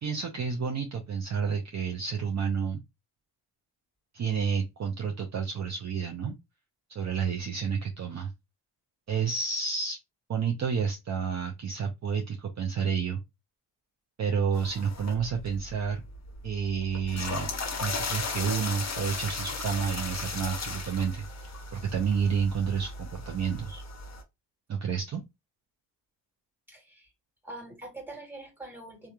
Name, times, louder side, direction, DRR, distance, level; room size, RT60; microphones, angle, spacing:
voice 1, 0.0-2.8 4.1-6.3 6.9-8.3 9.1-10.0 10.3-13.2 14.2-16.0 16.4-17.5 17.8-23.8 24.7-25.2, right 6 dB, 40° right, 2 dB, 0.6 m, -30 dB
sound 1, 14.5-24.2, left 3 dB, 40° left, 0.7 m, -36 dB
voice 2, 26.7-27.1 27.4-29.1, right 2 dB, 5° right, 0 dB, 1.4 m, -44 dB
2.8 x 2.3 x 2.3 m, 0.22 s
supercardioid pair, 55°, 43 cm